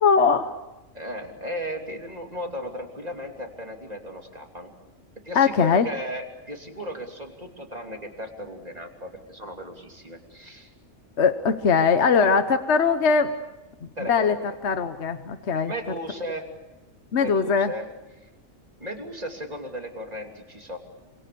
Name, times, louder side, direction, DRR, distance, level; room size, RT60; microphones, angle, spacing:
voice 1, 0.0-0.5 5.3-5.9 11.2-13.3 14.1-14.3 14.6-15.7 17.1-17.7, left 5 dB, 60° left, 9 dB, 1.3 m, -20 dB
voice 2, 0.9-4.7 5.2-10.7 12.1-12.3 14.0-14.5 15.6-16.5 17.2-17.9 18.2-18.3 18.8-20.8, equal, 30° right, 2 dB, 3.2 m, -36 dB
26.5 x 26.5 x 6.9 m, 1.0 s
omnidirectional pair, 1.4 m